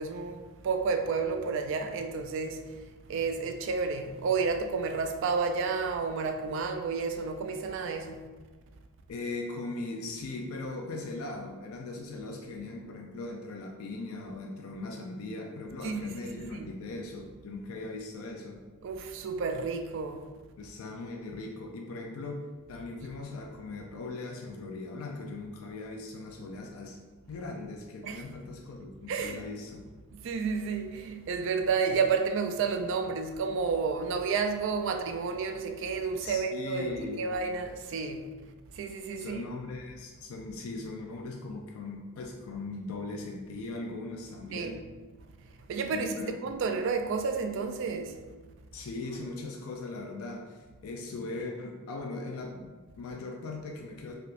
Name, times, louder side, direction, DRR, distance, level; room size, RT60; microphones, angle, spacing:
voice 1, 0.0-2.8 3.1-8.3 15.8-16.0 16.5-16.7 18.8-20.3 28.0-28.2 29.1-29.4 30.1-38.3 38.7-39.4 44.5-44.7 45.7-46.1 46.4-48.2, right 5 dB, 60° right, 0.3 m, -31 dB
voice 2, 9.1-18.6 20.6-22.4 22.7-27.0 27.3-29.8 36.2-37.2 39.2-44.8 45.9-46.4 48.7-54.1, left 3 dB, 90° left, 0.4 m, -39 dB
3.3 x 2.7 x 2.5 m
head